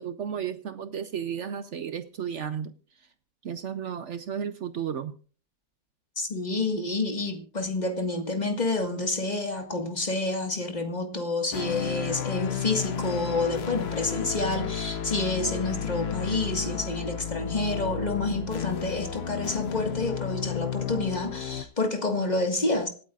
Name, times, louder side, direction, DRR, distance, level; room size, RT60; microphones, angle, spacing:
voice 1, 0.0-2.7 3.4-5.1, right 8 dB, 60° right, 0.9 m, -33 dB
voice 2, 6.2-22.9, left 2 dB, 25° left, 1.7 m, -29 dB
sound 1, 11.5-21.6, left 8 dB, 50° left, 0.8 m, -32 dB
26.0 x 8.8 x 2.4 m
omnidirectional pair, 1.7 m